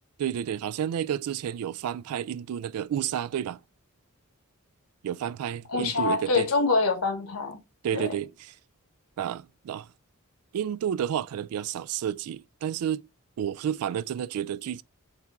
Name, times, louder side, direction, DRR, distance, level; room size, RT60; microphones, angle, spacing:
voice 1, 0.2-3.6 5.0-6.5 7.8-8.5 9.2-9.9 10.5-13.0 13.4-14.8, right 9 dB, 85° right, 0.3 m, -31 dB
voice 2, 5.7-7.6 7.9-8.1, left 3 dB, 75° left, 1.2 m, -25 dB
4.3 x 3.5 x 3.5 m
head